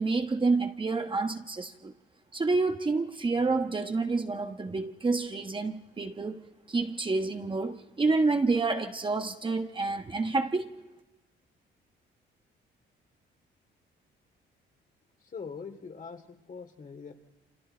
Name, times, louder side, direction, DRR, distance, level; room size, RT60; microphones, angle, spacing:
voice 1, 0.0-1.9 2.3-6.4 6.7-10.7, right 3 dB, 25° right, 1.3 m, -28 dB
voice 2, 15.3-17.1, left 5 dB, 45° left, 2.7 m, -42 dB
28.0 x 27.0 x 4.5 m
cardioid pair, 90°, 20 cm